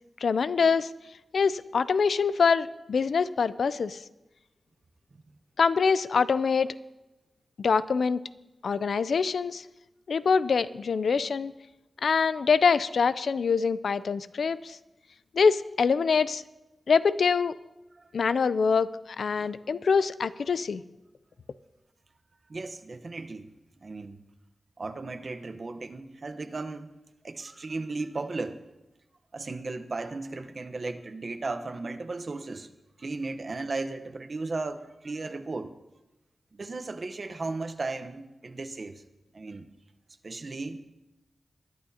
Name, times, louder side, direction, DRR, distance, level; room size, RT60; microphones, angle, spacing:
voice 1, 0.2-0.9 1.3-4.0 5.6-6.7 7.6-8.2 8.6-9.6 10.1-11.5 12.0-14.8 15.3-16.4 16.9-17.6 18.1-20.8, left 5 dB, 85° left, 15 dB, 0.4 m, -24 dB
voice 2, 22.5-23.5 23.8-24.2 24.8-27.0 27.2-28.6 29.3-32.7 33.0-35.7 36.5-39.0 39.3-39.7 40.2-40.8, right 3 dB, 50° right, 8 dB, 0.9 m, -35 dB
21.5 x 11.0 x 2.8 m, 1.0 s
wide cardioid pair, 75°, 0 cm